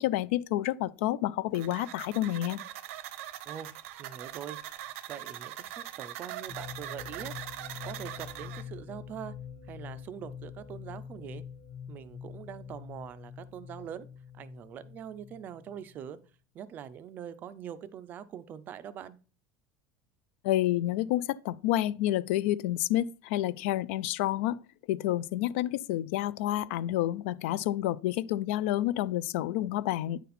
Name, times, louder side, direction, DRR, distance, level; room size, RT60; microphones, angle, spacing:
voice 1, 0.0-2.6 20.4-24.6 24.9-30.2, left 14 dB, 70° left, 0.3 m, -29 dB
sound 1, 1.5-8.6, right 13 dB, 85° right, 0.7 m, -42 dB
voice 2, 4.0-4.6 5.1-7.3 7.8-9.3 9.7-11.4 11.9-14.1 14.4-16.2 16.5-19.2, right 9 dB, 25° right, 0.4 m, -43 dB
sound 2, 6.5-16.1, left 7 dB, 25° left, 0.7 m, -45 dB
9.2 x 4.1 x 4.1 m
cardioid pair, 180°, 7 cm